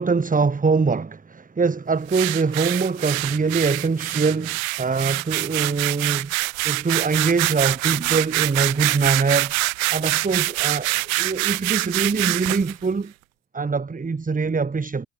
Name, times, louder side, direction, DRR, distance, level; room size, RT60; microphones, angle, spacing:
voice 1, 0.0-6.3 6.6-9.5 9.9-13.1 13.5-15.1, right 4 dB, 20° right, 1.7 m, -23 dB
sound 1, 2.1-12.7, right 22 dB, 80° right, 0.9 m, -25 dB
hypercardioid pair, 55°, 41 cm